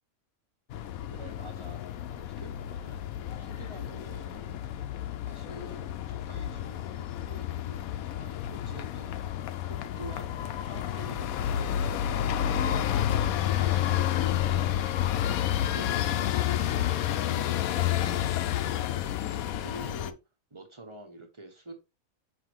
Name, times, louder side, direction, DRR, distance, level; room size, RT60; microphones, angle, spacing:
sound 1, 0.7-20.1, left 11 dB, 85° left, 1.0 m, -30 dB
voice 1, 1.1-1.9 2.2-3.0 3.3-4.5 5.2-9.1 9.6-19.0 19.3-20.2 20.5-21.7, right 2 dB, 20° right, 1.3 m, -48 dB
5.8 x 5.7 x 3.1 m
omnidirectional pair, 1.4 m